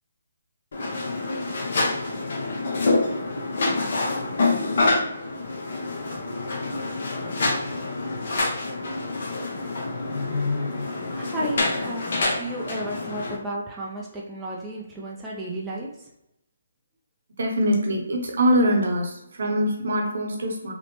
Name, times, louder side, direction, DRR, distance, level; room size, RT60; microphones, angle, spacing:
sound 1, 0.7-13.4, left 2 dB, 55° left, 0.7 m, -27 dB
voice 1, 11.1-16.1, right 1 dB, 10° right, -5 dB, 0.4 m, -33 dB
voice 2, 17.4-20.7, equal, 60° right, 0 dB, 0.8 m, -23 dB
3.0 x 2.0 x 2.9 m, 0.82 s
hypercardioid pair, 150°, 0 cm